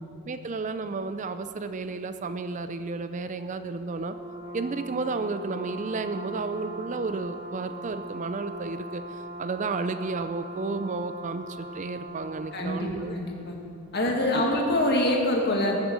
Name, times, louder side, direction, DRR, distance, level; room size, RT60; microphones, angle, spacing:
voice 1, 0.3-4.2 4.5-13.2 14.3-14.6, right 3 dB, 35° right, 10 dB, 0.4 m, -32 dB
Brass instrument, 3.8-12.6, right 1 dB, 50° right, 2.0 m, -40 dB
voice 2, 12.5-13.6 13.9-15.8, left 1 dB, 45° left, -1 dB, 2.1 m, -25 dB
21.0 x 7.5 x 6.3 m, 2.8 s
head